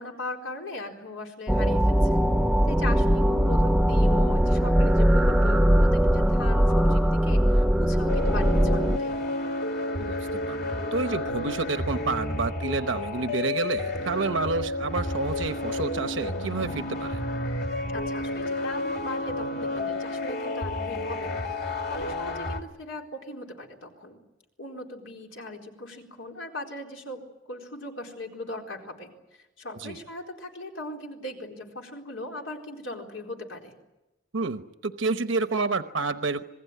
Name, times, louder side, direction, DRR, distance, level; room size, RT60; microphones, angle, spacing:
voice 1, 0.0-2.2 2.6-9.2 17.9-24.2 24.6-33.7, left 2 dB, 85° left, 2 dB, 4.2 m, -39 dB
sound 1, 1.5-9.0, equal, ahead, 0.8 m, -21 dB
sound 2, 8.1-22.6, left 2 dB, 60° left, 2.3 m, -31 dB
voice 2, 10.0-10.6 10.9-17.2 29.8-29.9 34.3-36.4, right 3 dB, 80° right, 9 dB, 0.9 m, -29 dB
26.5 x 20.0 x 9.4 m, 1.0 s
head